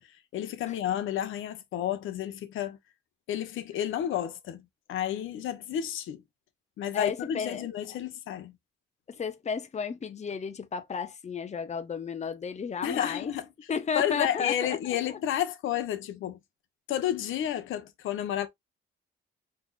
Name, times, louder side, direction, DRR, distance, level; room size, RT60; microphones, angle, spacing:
voice 1, 0.0-2.8 3.3-6.2 6.8-8.6 12.8-13.5 13.9-16.4 16.9-18.5, left 11 dB, 85° left, 1.3 m, -31 dB
voice 2, 6.9-7.6 9.1-13.3 13.7-15.2, left 6 dB, 35° left, 0.9 m, -33 dB
4.9 x 4.2 x 2.6 m
cardioid pair, 90°, 20 cm